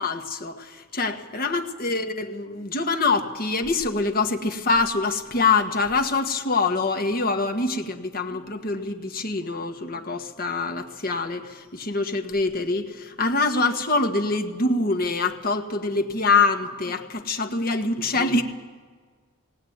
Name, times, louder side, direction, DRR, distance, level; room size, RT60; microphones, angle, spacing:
voice 1, 0.0-18.4, left 3 dB, 45° left, 5 dB, 1.5 m, -25 dB
19.0 x 19.0 x 9.4 m, 1.5 s
head